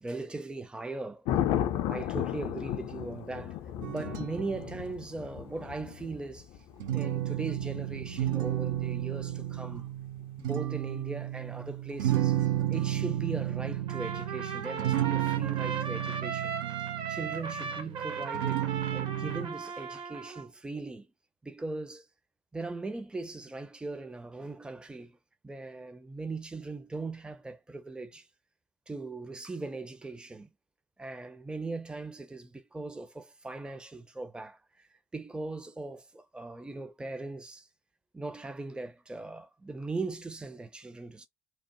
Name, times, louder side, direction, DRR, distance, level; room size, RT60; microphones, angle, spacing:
voice 1, 0.0-1.3 1.9-3.6 3.9-6.5 6.9-9.9 10.4-12.4 12.7-16.6 17.1-21.1 21.4-22.1 22.5-25.2 25.4-28.3 28.9-30.5 31.0-37.7 38.1-41.3, right 3 dB, 10° right, 0.5 m, -39 dB
Thunder, 1.3-9.3 12.0-12.4, left 11 dB, 50° left, 0.4 m, -35 dB
sound 1, 3.8-4.9 6.8-19.5, right 12 dB, 65° right, 0.4 m, -32 dB
Trumpet, 13.9-20.5, right 6 dB, 45° right, 0.8 m, -37 dB
2.8 x 2.0 x 2.9 m
figure-of-eight pair, 55°, 11 cm